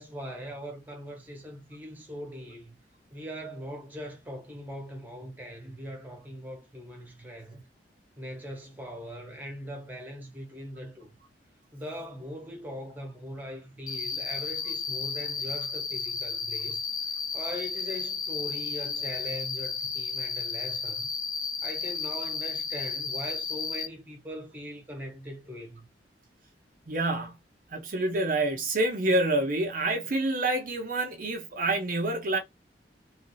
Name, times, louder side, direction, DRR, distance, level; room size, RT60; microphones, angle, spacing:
voice 1, 0.0-2.8 3.1-7.6 8.2-11.1 11.7-16.8 17.3-21.1 21.6-25.9, equal, 10° right, 1.0 m, -41 dB
Cricket, 13.9-23.9, left 5 dB, 20° left, 0.7 m, -33 dB
voice 2, 26.9-27.4 27.7-32.4, right 2 dB, 50° right, 0.6 m, -27 dB
3.1 x 2.5 x 3.1 m
head